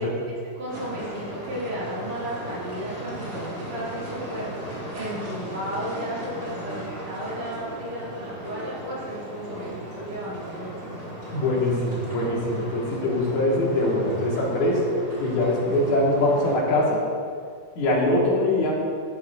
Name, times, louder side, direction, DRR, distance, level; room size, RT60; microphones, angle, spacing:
voice 1, 0.0-10.9, equal, 65° right, -8 dB, 4.0 m, -34 dB
sound 1, 0.7-16.5, right 1 dB, 35° right, 2.9 m, -37 dB
voice 2, 11.3-14.8 15.2-17.0 17.8-18.8, left 1 dB, 80° left, -4 dB, 3.3 m, -23 dB
12.0 x 10.5 x 2.6 m, 2.1 s
omnidirectional pair, 3.3 m